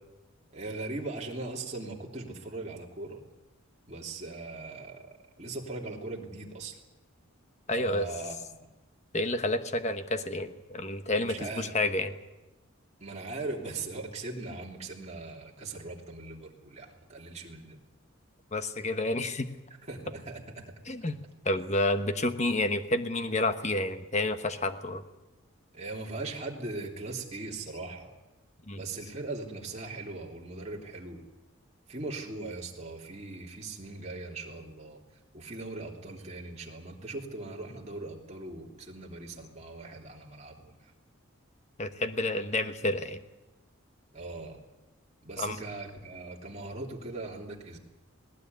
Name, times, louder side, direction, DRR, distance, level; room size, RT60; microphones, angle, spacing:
voice 1, 0.5-3.2 3.9-6.8 7.8-8.6 11.2-11.8 13.0-17.8 19.8-20.7 25.7-28.1 28.7-31.2 31.9-35.0 35.3-40.9 44.1-44.6 45.2-47.8, right 3 dB, 30° right, -1 dB, 3.1 m, -40 dB
voice 2, 7.7-8.0 9.1-12.1 18.5-19.5 20.9-21.2 21.4-25.0 28.7-28.8 41.8-43.2 45.4-45.6, left 2 dB, 30° left, 9 dB, 1.2 m, -29 dB
19.5 x 19.0 x 9.5 m, 1.1 s
head